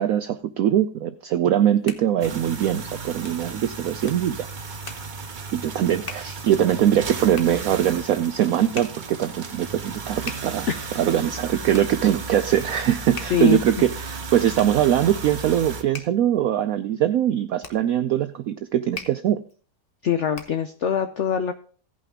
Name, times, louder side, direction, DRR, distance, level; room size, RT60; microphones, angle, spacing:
voice 1, 0.0-4.7 5.5-10.7 11.0-19.4, right 11 dB, 70° right, 10 dB, 0.8 m, -22 dB
Hands, 1.4-20.8, left 4 dB, 40° left, 1.0 m, -44 dB
sound 1, 2.2-15.8, right 4 dB, 40° right, 0.7 m, -35 dB
voice 2, 20.0-21.5, left 9 dB, 60° left, 9 dB, 0.7 m, -23 dB
17.0 x 5.7 x 3.5 m, 0.42 s
omnidirectional pair, 1.9 m